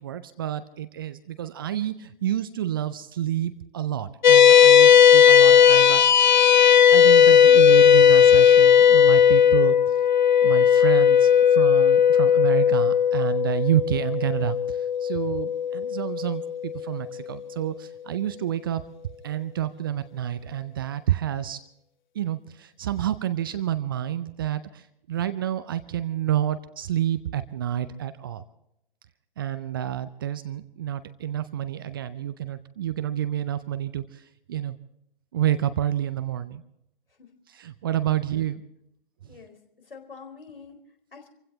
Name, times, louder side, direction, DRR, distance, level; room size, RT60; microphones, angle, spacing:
voice 1, 0.0-6.0 6.9-10.0 10.4-18.8 19.2-21.6 22.1-28.4 29.4-34.8 35.3-36.6 37.5-38.6, right 11 dB, 25° right, 12 dB, 0.5 m, -29 dB
sound 1, 4.2-16.9, left 8 dB, 50° left, 0.6 m, -16 dB
voice 2, 39.2-41.3, left 5 dB, 70° left, 4 dB, 4.4 m, -46 dB
27.5 x 16.0 x 2.9 m, 0.77 s
figure-of-eight pair, 130°, 29 cm